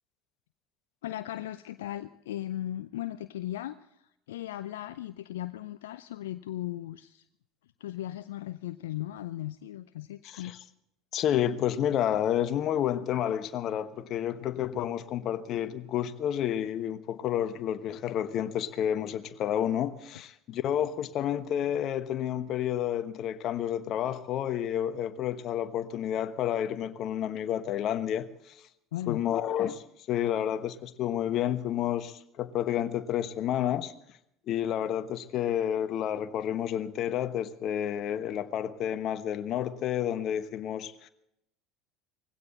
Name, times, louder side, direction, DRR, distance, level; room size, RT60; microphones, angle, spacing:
voice 1, 1.0-3.8 4.3-7.2 7.8-10.5 28.9-29.2, left 13 dB, 75° left, 0.5 m, -37 dB
voice 2, 10.2-10.6 11.1-28.6 29.1-33.9 34.5-41.1, left 10 dB, 50° left, 1.1 m, -30 dB
20.0 x 16.5 x 4.2 m
hypercardioid pair, 70°, 0 cm